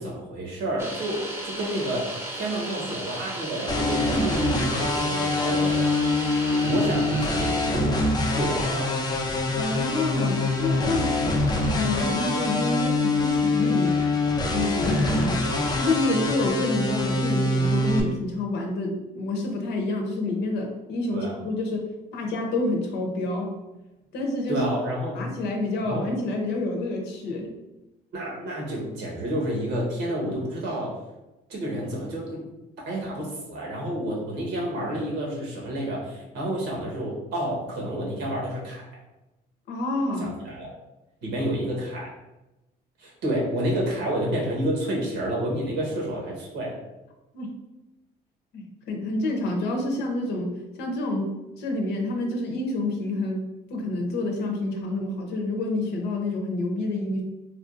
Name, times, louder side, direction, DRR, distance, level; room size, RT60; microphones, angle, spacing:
voice 1, 0.0-5.8 6.6-8.0 8.3-8.9 21.1-21.3 24.5-25.3 25.8-26.1 28.1-31.0 31.5-32.4 32.9-38.8 40.2-40.7 41.2-42.1 43.0-46.8, right 1 dB, 85° right, -3 dB, 1.2 m, -29 dB
sound 1, 0.8-7.7, right 1 dB, 15° right, 0.7 m, -35 dB
sound 2, 3.7-18.0, left 2 dB, 25° left, 0.5 m, -24 dB
voice 2, 9.5-11.2 11.7-14.0 14.5-15.5 15.8-23.5 24.1-24.6 25.1-27.5 39.7-40.3 47.3-47.5 48.5-57.2, left 2 dB, 80° left, 1 dB, 0.7 m, -28 dB
3.4 x 2.4 x 2.5 m, 0.99 s
cardioid pair, 110°, 17 cm